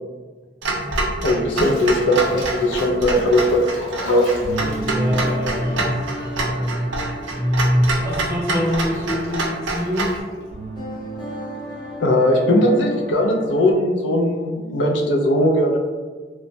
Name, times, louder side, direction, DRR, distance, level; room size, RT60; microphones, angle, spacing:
Clock, 0.6-10.2, right 2 dB, 80° right, 0.5 m, -26 dB
Bathtub (filling or washing), 0.8-6.7 6.9-10.5, equal, 85° left, 0.8 m, -40 dB
voice 1, 1.2-3.7 4.0-4.3 12.0-15.8, left 1 dB, 65° left, 1 dB, 0.4 m, -18 dB
sound 1, 3.7-13.7, right 1 dB, 25° left, 0.9 m, -33 dB
voice 2, 4.8-7.0 7.3-10.1, equal, 15° right, -4 dB, 0.5 m, -23 dB
3.1 x 2.0 x 2.6 m, 1.4 s
head